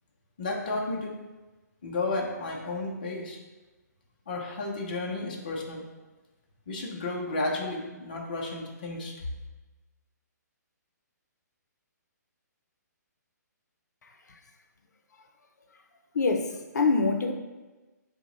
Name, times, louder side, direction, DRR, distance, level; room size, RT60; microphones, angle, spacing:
voice 1, 0.4-1.2 1.8-3.4 4.3-5.9 6.7-9.1, left 2 dB, 30° left, -1 dB, 0.6 m, -32 dB
voice 2, 16.1-17.3, left 4 dB, 65° left, 4 dB, 0.6 m, -25 dB
5.7 x 2.2 x 3.8 m, 1.2 s
hypercardioid pair, 180°, 10 cm